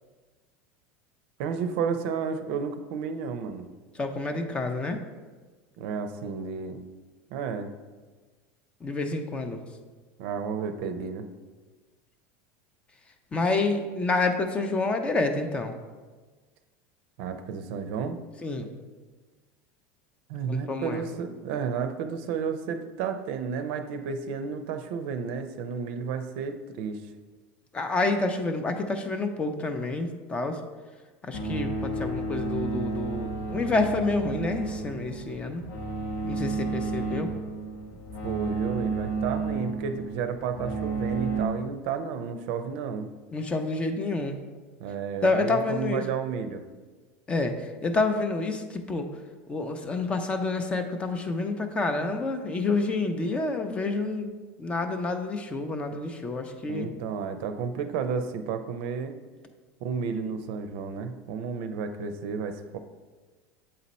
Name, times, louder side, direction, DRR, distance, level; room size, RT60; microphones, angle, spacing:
voice 1, 1.4-3.7 5.8-6.8 7.3-7.7 10.2-11.3 17.2-18.2 20.3-27.0 38.2-43.1 44.8-46.6 56.7-59.1 59.8-62.8, right 6 dB, 65° right, 9 dB, 0.5 m, -32 dB
voice 2, 4.0-5.0 8.8-9.6 13.3-15.7 18.4-18.7 20.5-21.0 27.7-30.6 31.2-35.6 36.2-37.3 43.3-44.4 45.2-46.0 47.3-49.1 49.5-54.3 54.6-56.9, left 3 dB, 15° left, 7 dB, 0.5 m, -28 dB
sound 1, 31.3-41.5, right 3 dB, 60° left, 1.0 m, -32 dB
7.6 x 4.1 x 4.1 m, 1.3 s
supercardioid pair, 150°, 6 cm